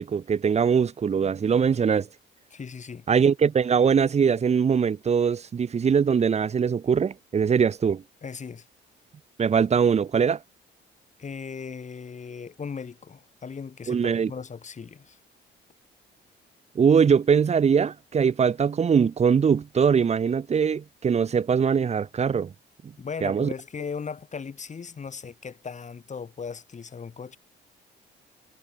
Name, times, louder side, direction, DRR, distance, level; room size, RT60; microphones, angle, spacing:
voice 1, 0.0-2.1 3.1-8.0 9.4-10.4 13.9-14.3 16.8-22.5 23.2-23.5, right 6 dB, 35° right, 0.6 m, -22 dB
voice 2, 2.5-3.0 8.2-8.7 11.2-15.2 23.0-27.4, left 5 dB, 35° left, 2.5 m, -37 dB
cardioid pair, 90°, 20 cm